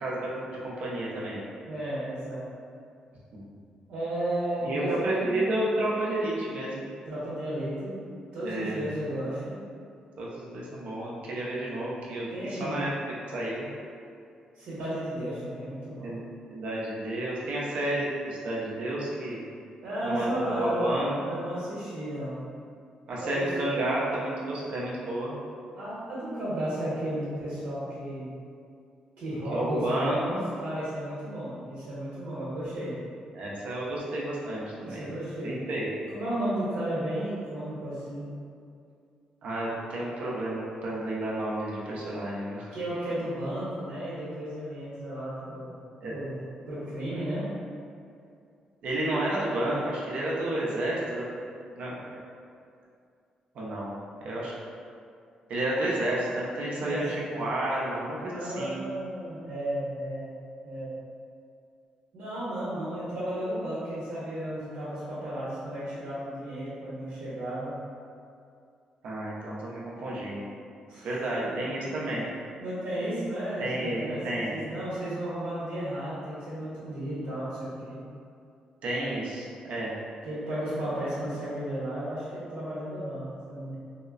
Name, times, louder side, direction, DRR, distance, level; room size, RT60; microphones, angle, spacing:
voice 1, 0.0-1.4 3.3-3.6 4.6-6.8 8.4-8.8 10.2-12.9 13.3-13.7 16.0-16.2 16.5-19.4 20.0-21.4 23.1-25.4 29.5-30.4 33.3-35.1 35.4-35.9 39.4-42.7 46.0-46.1 48.8-51.2 51.7-51.9 53.5-53.9 54.2-54.5 55.5-58.8 69.0-70.5 71.0-72.3 73.6-74.5 78.8-79.9, right 1 dB, 65° right, -6 dB, 0.6 m, -31 dB
voice 2, 1.7-2.5 3.9-5.3 7.0-8.0 8.3-9.5 12.3-12.8 14.6-16.2 19.8-20.9 21.3-22.4 23.2-23.5 25.7-28.3 29.2-30.3 30.6-33.0 34.8-35.6 36.1-38.3 42.7-45.7 46.1-46.4 46.7-47.5 56.8-57.1 58.3-60.3 60.6-61.0 62.1-67.7 70.9-71.1 72.6-78.0 80.2-83.8, right 1 dB, 90° right, -11 dB, 1.0 m, -33 dB
3.6 x 2.1 x 2.4 m, 2.4 s
cardioid pair, 160°, 2 cm